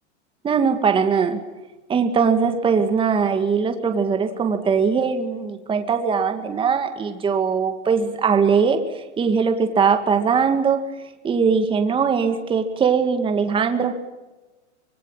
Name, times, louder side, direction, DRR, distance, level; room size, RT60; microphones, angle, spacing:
voice 1, 0.4-1.4 1.9-10.9 11.2-13.9, right 6 dB, 15° right, 7 dB, 1.9 m, -20 dB
25.5 x 21.0 x 8.9 m, 1.1 s
supercardioid pair, 145°, 35 cm